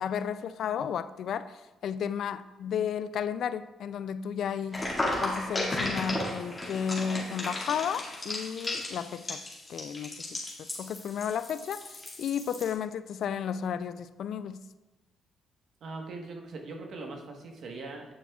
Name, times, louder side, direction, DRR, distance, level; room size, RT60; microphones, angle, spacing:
voice 1, 0.0-4.9 5.2-9.4 9.7-14.6, left 8 dB, 70° left, 13 dB, 0.3 m, -33 dB
sound 1, 4.7-12.7, left 1 dB, 20° left, 2.0 m, -35 dB
voice 2, 15.8-18.1, right 3 dB, 65° right, 2 dB, 1.2 m, -41 dB
8.4 x 7.2 x 2.4 m, 1.1 s
cardioid pair, 90°, 0 cm